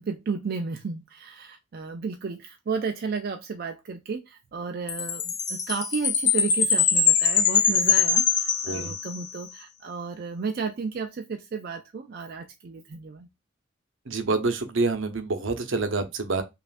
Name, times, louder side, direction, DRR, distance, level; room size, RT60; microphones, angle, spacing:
voice 1, 0.0-13.3, right 5 dB, 50° right, 0.4 m, -33 dB
Chime, 4.9-9.4, left 6 dB, 40° left, 0.8 m, -23 dB
voice 2, 14.1-16.4, right 3 dB, 75° right, 0.8 m, -27 dB
5.4 x 2.5 x 2.5 m
head